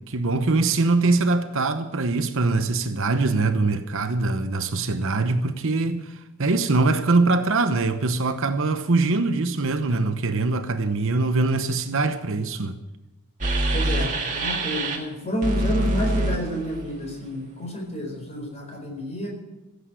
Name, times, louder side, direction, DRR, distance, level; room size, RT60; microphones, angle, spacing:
voice 1, 0.0-6.1 6.4-12.8, right 3 dB, 60° right, 0.9 m, -23 dB
sound 1, 13.4-15.0 15.4-17.1, right 2 dB, 35° right, 2.0 m, -25 dB
voice 2, 13.7-19.3, equal, 30° left, 4.6 m, -29 dB
15.5 x 8.2 x 8.2 m
head